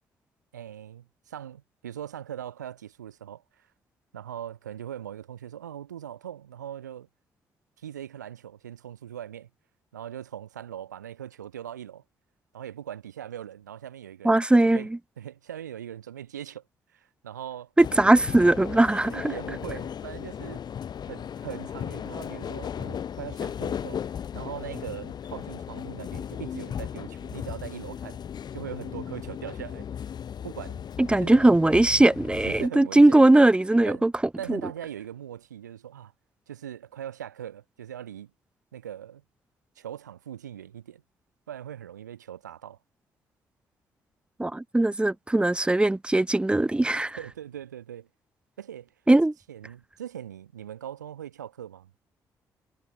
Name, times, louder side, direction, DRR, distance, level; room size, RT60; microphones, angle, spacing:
voice 1, 0.5-3.7 4.1-7.1 7.8-9.5 9.9-12.0 12.5-14.9 15.2-16.6 16.9-17.7 18.8-20.6 21.1-24.0 24.3-28.2 28.5-29.9 30.4-30.8 31.2-31.4 32.4-33.2 33.9-34.0 34.4-36.1 36.5-38.3 38.7-39.2 39.8-41.0 41.5-42.8 47.2-48.1 48.6-48.9 49.5-51.9, right 10 dB, 80° right, 4.0 m, -40 dB
voice 2, 14.2-14.8 17.8-19.2 31.0-34.1 34.5-34.6 44.4-47.2 49.1-49.3, right 2 dB, 10° right, 0.8 m, -20 dB
sound 1, 17.8-32.7, left 8 dB, 50° left, 3.6 m, -36 dB
figure-of-eight pair, 40°, 9 cm